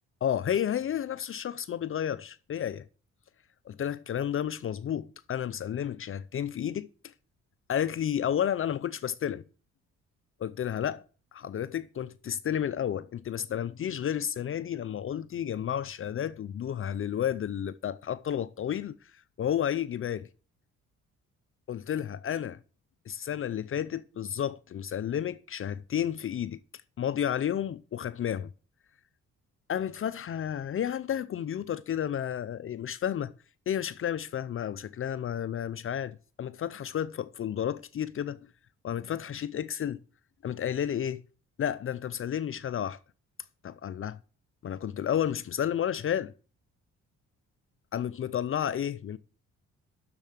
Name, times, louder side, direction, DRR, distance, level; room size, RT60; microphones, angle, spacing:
voice 1, 0.2-2.8 3.7-6.9 7.7-9.4 10.4-11.0 11.3-19.0 19.4-20.3 21.7-22.6 23.1-26.6 27.0-28.5 29.7-33.3 33.7-38.4 38.8-40.0 40.4-41.2 41.6-43.0 43.6-44.2 44.6-46.3 47.9-49.2, left 9 dB, 45° left, 0.5 m, -31 dB
7.0 x 6.7 x 7.8 m
cardioid pair, 90°, 30 cm